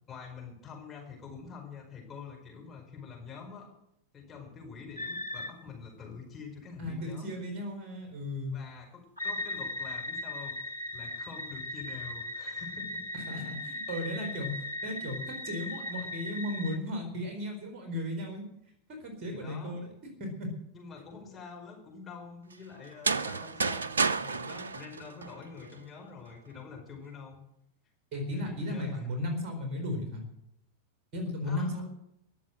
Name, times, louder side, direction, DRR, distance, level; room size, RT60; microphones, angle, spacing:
voice 1, 0.1-3.7 4.1-7.4 8.5-13.0 19.3-19.8 20.7-23.9 24.2-27.4 28.1-29.1 31.4-31.8, left 5 dB, 20° left, -1 dB, 5.0 m, -46 dB
sound 1, 5.0-5.5 9.2-16.8, left 2 dB, 90° left, 1.2 m, -38 dB
voice 2, 6.8-8.6 13.1-18.4 18.9-19.9 20.2-20.5 28.1-30.2 31.1-31.8, left 1 dB, 35° right, 5 dB, 4.2 m, -35 dB
sound 2, 22.9-25.8, right 4 dB, 75° right, 0.5 m, -31 dB
21.0 x 7.3 x 7.8 m, 0.79 s
figure-of-eight pair, 90°, 0 cm